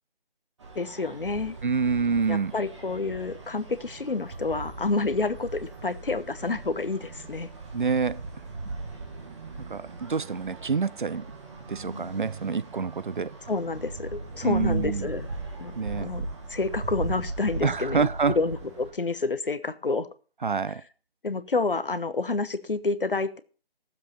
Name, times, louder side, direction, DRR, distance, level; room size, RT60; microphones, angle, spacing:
sound 1, 0.6-18.9, right 3 dB, 30° right, 2.2 m, -38 dB
voice 1, 0.7-1.6 2.3-7.5 13.5-15.3 15.6-18.1 18.4-20.1 21.2-23.4, left 3 dB, 65° left, 1.0 m, -29 dB
voice 2, 1.6-2.5 7.7-8.2 9.7-11.3 11.7-13.3 14.4-15.1 15.8-16.1 17.6-18.4 20.4-20.8, right 5 dB, 55° right, 0.5 m, -27 dB
14.5 x 7.5 x 5.4 m
figure-of-eight pair, 155°, 30 cm